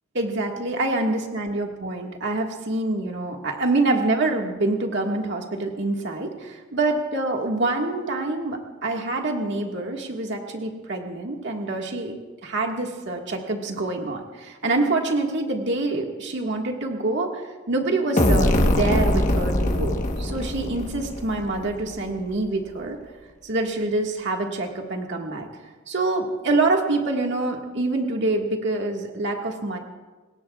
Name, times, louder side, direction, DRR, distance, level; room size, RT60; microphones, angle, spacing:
voice 1, 0.1-12.2 12.4-23.0 23.4-25.5 25.9-29.8, right 2 dB, 65° right, 1 dB, 1.8 m, -26 dB
sound 1, 18.2-21.8, left 1 dB, 40° left, 1.2 m, -22 dB
26.5 x 20.5 x 2.4 m, 1.3 s
head